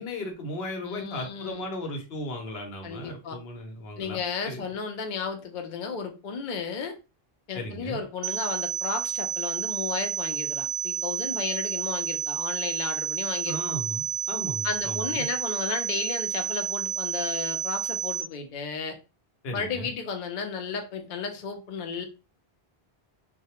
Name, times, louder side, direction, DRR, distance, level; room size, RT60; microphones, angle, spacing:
voice 1, 0.0-4.6 7.5-8.0 13.5-15.3 19.4-19.9, left 1 dB, 75° left, 1.0 m, -36 dB
voice 2, 0.8-1.7 2.8-3.4 4.0-7.0 7.5-13.6 14.6-19.0 19.5-22.0, left 5 dB, 55° left, 0.6 m, -33 dB
sound 1, 8.2-18.2, right 8 dB, 65° right, 0.7 m, -30 dB
2.2 x 2.0 x 2.9 m
omnidirectional pair, 1.0 m